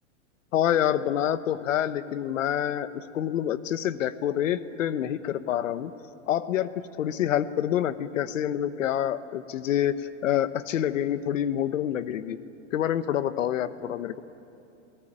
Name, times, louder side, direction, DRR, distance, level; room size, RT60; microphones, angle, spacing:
voice 1, 0.5-5.9 6.3-6.7 7.0-12.4 12.7-14.2, left 10 dB, 85° left, 13 dB, 1.2 m, -27 dB
28.0 x 18.0 x 8.9 m, 2.7 s
supercardioid pair, 145°, 38 cm